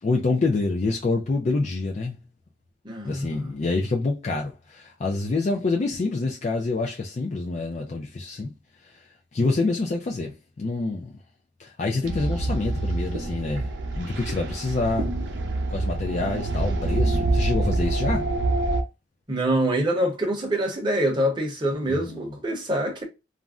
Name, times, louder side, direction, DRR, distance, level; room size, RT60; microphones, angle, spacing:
voice 1, 0.0-2.2 3.0-8.5 8.8-9.0 9.3-11.1 11.6-13.7 13.9-15.1 15.7-18.2 21.9-22.3, left 3 dB, 40° left, 0.3 m, -27 dB
voice 2, 2.8-3.6 9.4-9.5 19.3-23.0, right 1 dB, 25° right, 0.8 m, -25 dB
sound 1, 12.0-18.8, right 2 dB, 80° right, 0.6 m, -26 dB
2.4 x 2.1 x 3.4 m
head